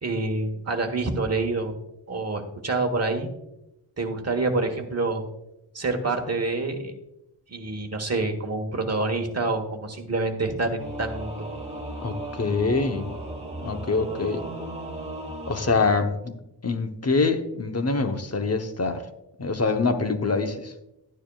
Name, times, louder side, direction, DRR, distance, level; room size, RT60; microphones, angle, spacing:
voice 1, 0.0-1.8 2.1-3.3 4.0-5.2 5.7-6.9 7.5-11.5, right 3 dB, 35° right, 1.3 m, -27 dB
Singing / Musical instrument, 10.8-15.8, right 1 dB, 15° right, 2.8 m, -36 dB
voice 2, 12.0-13.0 13.6-14.4 15.5-16.3 16.6-19.0 19.4-20.7, left 4 dB, 35° left, 0.9 m, -25 dB
12.0 x 9.6 x 2.3 m
wide cardioid pair, 125°, 43 cm